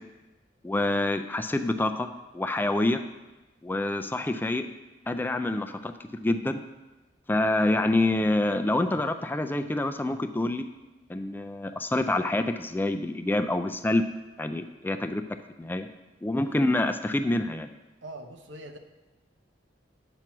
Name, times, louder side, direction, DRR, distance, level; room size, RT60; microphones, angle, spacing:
voice 1, 0.6-2.1 2.3-3.0 3.6-4.6 5.1-6.6 7.3-10.7 11.1-14.0 14.4-15.2 15.6-15.9 16.2-17.7, left 2 dB, 10° left, 8 dB, 0.3 m, -27 dB
voice 2, 18.0-18.8, right 1 dB, 80° right, 5 dB, 0.8 m, -42 dB
8.8 x 4.5 x 5.9 m, 1.1 s
head